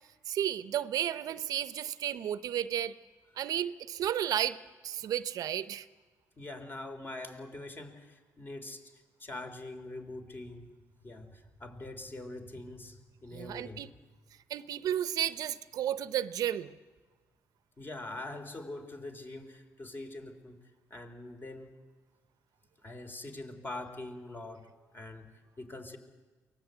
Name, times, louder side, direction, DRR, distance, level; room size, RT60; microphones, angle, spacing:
voice 1, 0.3-2.9 3.4-4.6 4.8-5.9 13.3-13.9 14.5-16.8, right 10 dB, 70° right, 14 dB, 0.7 m, -33 dB
voice 2, 6.4-8.8 9.2-10.7 11.0-13.8 17.8-20.6 20.9-21.7 22.8-26.0, left 2 dB, 35° left, 6 dB, 3.7 m, -43 dB
23.5 x 19.0 x 8.2 m, 1.3 s
cardioid pair, 75°, 7 cm